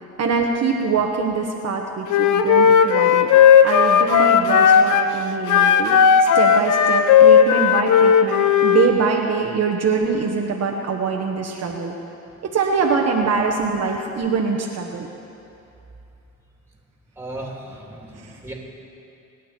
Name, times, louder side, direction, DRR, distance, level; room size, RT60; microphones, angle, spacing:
voice 1, 0.2-3.3 3.6-11.9 12.4-15.1, right 5 dB, 55° right, 0 dB, 1.4 m, -23 dB
Wind instrument woodwind instrument, 2.1-5.1 5.5-8.9, left 7 dB, 80° left, 0.7 m, -14 dB
voice 2, 17.1-18.5, right 1 dB, 10° right, -1 dB, 3.1 m, -36 dB
25.0 x 9.3 x 4.5 m, 2.7 s
cardioid pair, 90°, 30 cm